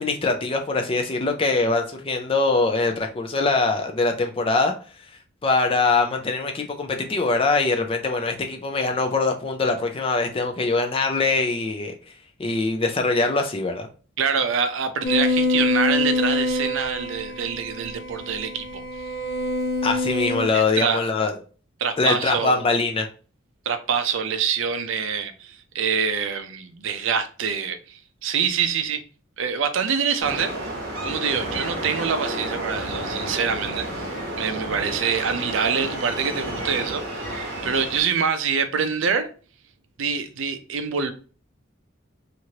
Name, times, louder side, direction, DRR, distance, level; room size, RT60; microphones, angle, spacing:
voice 1, 0.0-4.7 5.4-11.9 12.4-13.9 19.8-21.3 22.0-23.1, left 3 dB, 25° left, 0.4 m, -23 dB
voice 2, 14.2-18.8 20.5-21.0 21.8-22.6 23.7-29.0 29.4-30.5 31.0-39.3 40.0-41.1, right 6 dB, 65° right, 0.4 m, -25 dB
sound 1, 15.0-20.4, left 2 dB, 45° left, 0.8 m, -25 dB
sound 2, 30.2-38.0, right 1 dB, 45° right, 1.0 m, -31 dB
3.0 x 2.5 x 2.8 m
head